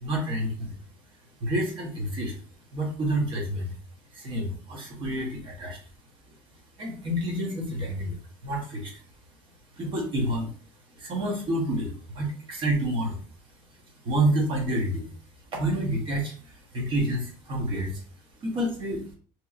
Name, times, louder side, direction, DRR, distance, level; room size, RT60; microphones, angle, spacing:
voice 1, 0.0-0.8 1.4-2.3 2.7-3.7 4.1-5.8 6.8-9.0 9.7-10.5 10.9-13.2 14.0-15.1 15.5-18.0 18.4-19.0, right 1 dB, 35° right, -1 dB, 0.9 m, -29 dB
2.8 x 2.6 x 2.4 m, 0.41 s
cardioid pair, 165°, 14 cm